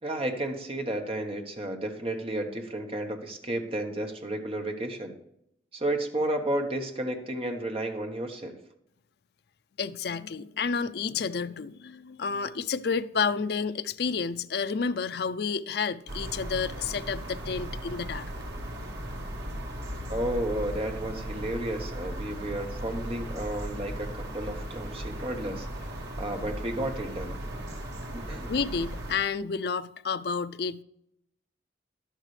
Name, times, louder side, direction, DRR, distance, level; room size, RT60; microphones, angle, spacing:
voice 1, 0.0-5.1 5.7-8.6 20.1-25.7 26.2-27.4 28.1-28.5, right 1 dB, 30° right, 1.2 m, -32 dB
voice 2, 9.8-18.2 28.5-30.8, left 5 dB, 60° left, 0.5 m, -30 dB
sound 1, 16.1-29.1, right 1 dB, 70° right, 2.0 m, -37 dB
11.5 x 11.0 x 3.3 m
head